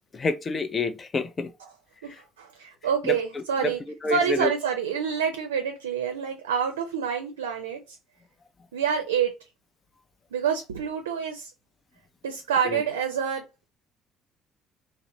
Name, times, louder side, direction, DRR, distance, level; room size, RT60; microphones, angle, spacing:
voice 1, 0.1-1.5 2.0-2.2 3.0-3.7 4.0-4.5 12.6-12.8, left 3 dB, 35° left, 0.5 m, -29 dB
voice 2, 2.0-3.8 4.1-8.0 8.7-9.3 10.3-11.5 12.2-13.5, right 7 dB, 85° right, 0.4 m, -27 dB
2.7 x 2.1 x 2.6 m
hypercardioid pair, 55°, 0 cm